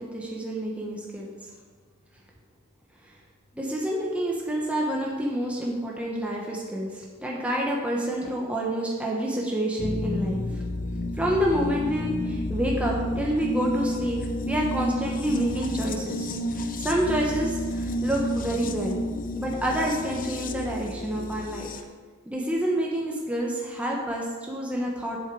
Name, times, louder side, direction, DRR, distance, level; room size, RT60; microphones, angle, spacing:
voice 1, 0.0-1.3 3.0-3.1 3.5-10.6 11.2-19.0 19.3-21.7 22.3-25.2, right 1 dB, 5° right, -3 dB, 1.1 m, -28 dB
sound 1, 9.8-21.8, left 1 dB, 40° left, 0.6 m, -31 dB
7.9 x 7.4 x 4.7 m, 1.5 s
head